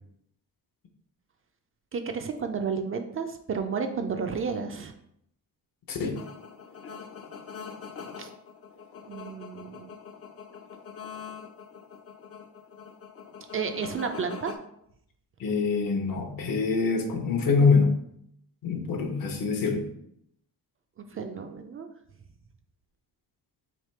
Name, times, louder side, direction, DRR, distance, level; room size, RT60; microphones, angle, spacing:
voice 1, 1.9-4.9 8.2-8.3 9.0-9.9 13.5-14.5 21.0-21.9, right 5 dB, 35° right, 6 dB, 0.4 m, -32 dB
voice 2, 5.9-6.2 15.4-17.9 18.6-19.8, left 4 dB, 60° left, 4 dB, 0.9 m, -25 dB
sound 1, 6.1-14.6, left 6 dB, 40° left, 0.5 m, -43 dB
3.3 x 3.1 x 4.3 m, 0.73 s
cardioid pair, 110°, 38 cm